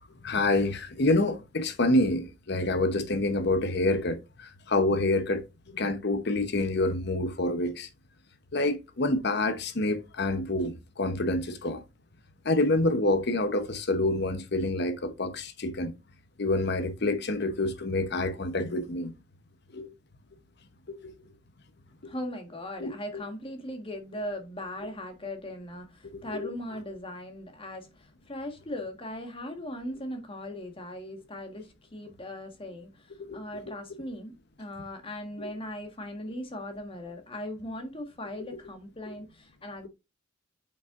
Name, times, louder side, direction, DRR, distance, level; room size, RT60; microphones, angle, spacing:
voice 1, 0.2-5.4 5.7-7.9 8.5-11.8 12.4-15.9 16.4-19.1 19.7-19.9 20.9-21.0 22.8-23.2 26.1-26.5 33.2-33.4, left 2 dB, 55° left, 0.9 m, -27 dB
voice 2, 22.0-33.1 33.3-34.3 34.6-39.9, left 1 dB, 30° left, 1.6 m, -39 dB
8.7 x 5.5 x 2.5 m
head